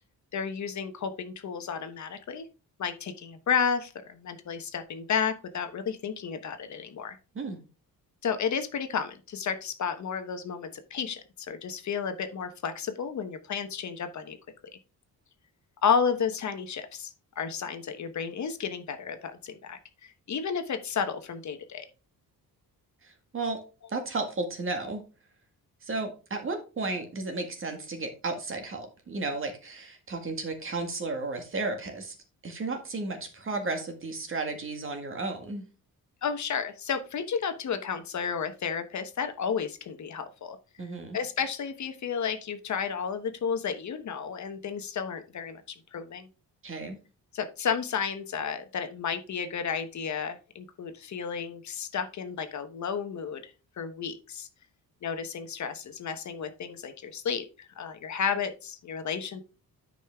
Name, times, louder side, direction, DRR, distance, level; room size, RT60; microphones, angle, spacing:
voice 1, 0.3-2.5 2.8-7.2 8.2-14.4 15.8-17.1 17.4-21.9 36.2-40.6 41.1-45.6 45.9-46.3 47.3-53.5 53.8-54.5 55.0-59.4, left 6 dB, 50° left, 8 dB, 1.0 m, -32 dB
voice 2, 23.0-23.6 23.9-25.0 25.8-32.2 32.4-35.7 40.8-41.2 46.6-47.0, right 3 dB, 35° right, 5 dB, 1.8 m, -33 dB
9.7 x 5.4 x 3.5 m, 0.33 s
cardioid pair, 155°, 36 cm